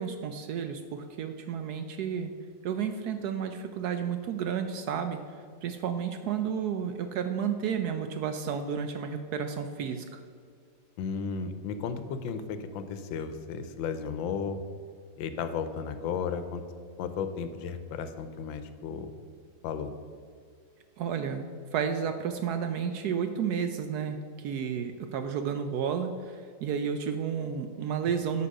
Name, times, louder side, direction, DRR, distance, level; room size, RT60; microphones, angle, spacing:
voice 1, 0.0-2.3 2.6-5.2 5.6-10.2 21.0-21.4 21.7-28.5, right 7 dB, 70° right, 7 dB, 0.9 m, -32 dB
voice 2, 11.0-14.6 15.2-16.6 17.0-19.2 19.6-19.9, left 6 dB, 85° left, 10 dB, 1.4 m, -34 dB
8.3 x 5.4 x 6.4 m, 2.1 s
omnidirectional pair, 2.1 m